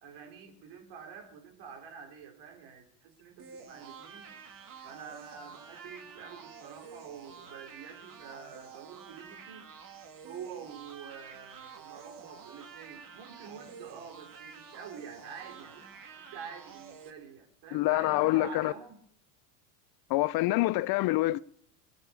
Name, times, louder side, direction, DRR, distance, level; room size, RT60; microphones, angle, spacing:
voice 1, 0.0-4.4 4.8-9.7 10.2-15.9 16.2-19.0, right 7 dB, 60° right, 4.1 m, -47 dB
sound 1, 3.4-17.1, right 6 dB, 40° right, 2.5 m, -49 dB
voice 2, 17.7-18.7 20.1-21.4, left 18 dB, 50° left, 0.6 m, -26 dB
19.0 x 8.9 x 8.5 m
supercardioid pair, 95°, 47 cm